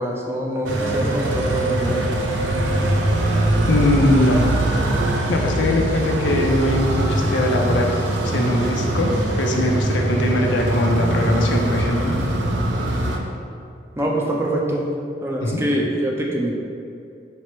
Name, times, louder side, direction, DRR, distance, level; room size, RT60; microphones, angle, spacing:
voice 1, 0.0-2.0 14.0-14.9 15.2-16.6, right 1 dB, 15° right, -1 dB, 0.4 m, -24 dB
sound 1, 0.7-13.2, right 1 dB, 80° right, 0.5 m, -22 dB
voice 2, 3.7-4.5 5.3-7.9 8.2-9.1 9.4-12.2 15.4-15.6, left 1 dB, 80° left, 1 dB, 0.5 m, -21 dB
4.4 x 2.0 x 4.4 m, 2.5 s
head